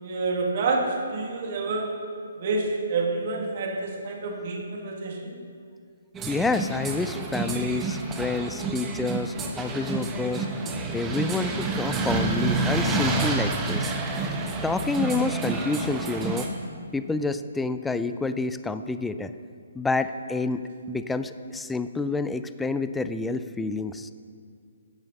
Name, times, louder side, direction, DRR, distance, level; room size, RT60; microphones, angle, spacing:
voice 1, 0.0-0.8 1.1-2.0 2.4-5.4, right 3 dB, 50° right, 0 dB, 2.2 m, -28 dB
sound 1, 6.1-16.5, right 3 dB, 15° right, 1.0 m, -29 dB
voice 2, 6.3-10.5 10.9-13.9 14.6-16.5 16.9-19.3 19.8-24.1, left 3 dB, 5° left, 11 dB, 0.3 m, -28 dB
11.0 x 7.4 x 5.4 m, 2.2 s
hypercardioid pair, 155°, 0 cm